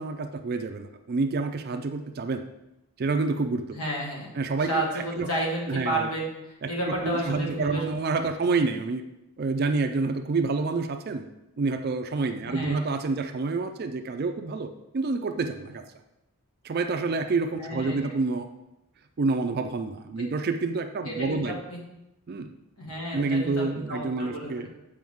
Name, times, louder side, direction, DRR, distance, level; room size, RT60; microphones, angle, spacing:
voice 1, 0.0-2.4 3.0-3.8 4.4-5.3 5.7-6.1 6.6-9.0 9.4-11.3 11.6-15.8 16.6-18.5 19.2-21.6 22.3-22.5 23.1-24.7, right 3 dB, 45° right, 7 dB, 0.4 m, -28 dB
voice 2, 3.7-4.3 4.7-7.9 12.5-12.8 17.6-18.0 21.1-21.8 22.8-24.7, right 1 dB, 75° left, -2 dB, 1.8 m, -31 dB
7.7 x 5.0 x 3.6 m, 0.90 s
head